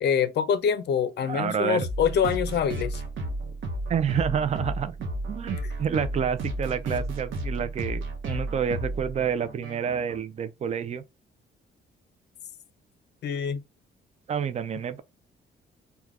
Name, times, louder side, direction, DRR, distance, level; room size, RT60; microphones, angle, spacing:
voice 1, 0.0-3.0 13.2-13.6, left 7 dB, 60° left, 0.5 m, -25 dB
voice 2, 1.3-1.9 3.9-4.9 5.3-11.0 14.3-15.0, right 7 dB, 35° right, 0.4 m, -28 dB
sound 1, 1.8-10.2, right 1 dB, 75° right, 0.8 m, -33 dB
3.2 x 2.2 x 2.4 m
cardioid pair, 90°, 20 cm